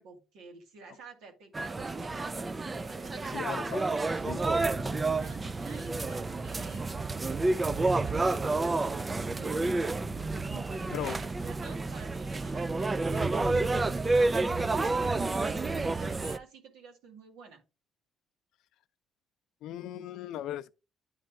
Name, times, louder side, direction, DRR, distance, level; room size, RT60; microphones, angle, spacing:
voice 1, 0.0-3.6 5.2-9.8 10.4-17.6, right 5 dB, 90° right, 2.0 m, -51 dB
sound 1, 1.5-16.4, right 3 dB, 20° right, 0.3 m, -30 dB
voice 2, 3.3-4.0 4.2-4.5 10.9-11.2 19.6-20.7, left 12 dB, 80° left, 0.4 m, -37 dB
9.7 x 3.3 x 3.6 m
cardioid pair, 110°, 0 cm